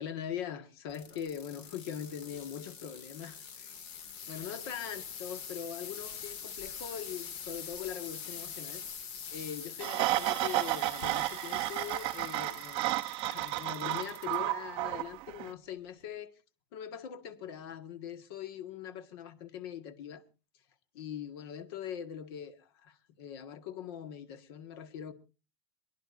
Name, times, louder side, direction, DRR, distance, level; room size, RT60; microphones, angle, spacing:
voice 1, 0.0-3.8 4.3-8.8 9.3-12.9 13.2-16.3 16.7-20.2 20.9-25.1, left 9 dB, 65° left, 1.8 m, -42 dB
sound 1, 0.9-14.4 14.9-15.3 16.0-16.1, left 7 dB, 45° left, 2.4 m, -44 dB
sound 2, 9.8-15.5, right 18 dB, 40° right, 0.7 m, -32 dB
28.5 x 10.5 x 2.6 m
supercardioid pair, 170°, 13 cm